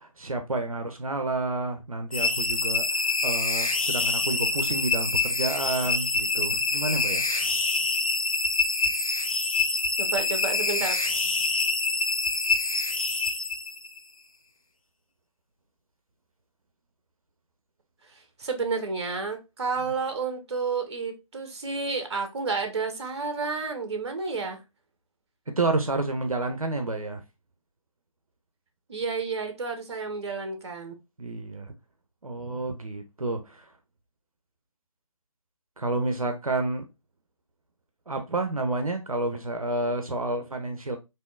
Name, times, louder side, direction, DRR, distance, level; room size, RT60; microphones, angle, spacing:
voice 1, 0.0-7.3 25.6-27.2 31.2-31.7 32.2-33.6 35.8-36.8 38.1-41.0, right 2 dB, 85° right, 0.6 m, -30 dB
sound 1, 2.1-14.0, left 3 dB, 80° left, 0.6 m, -26 dB
voice 2, 10.0-10.9 18.4-24.6 28.9-30.9, right 4 dB, 50° right, 0.8 m, -30 dB
3.5 x 2.6 x 2.3 m
figure-of-eight pair, 145°, 18 cm